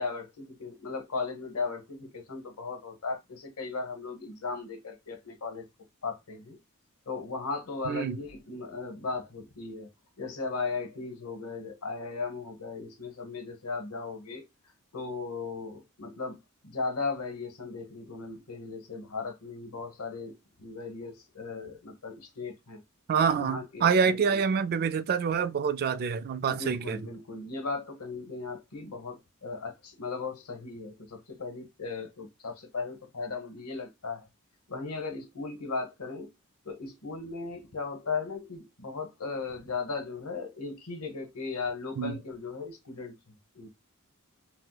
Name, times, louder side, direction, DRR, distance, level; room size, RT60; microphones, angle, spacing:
voice 1, 0.0-5.7 6.0-6.6 7.1-9.9 10.2-14.5 14.9-22.8 23.4-24.4 26.5-34.3 34.7-36.3 36.6-43.1 43.5-43.7, left 4 dB, 80° left, 1.0 m, -37 dB
voice 2, 7.9-8.2 23.1-27.0 42.0-42.2, right 6 dB, 45° right, 0.3 m, -26 dB
4.3 x 2.1 x 2.2 m
head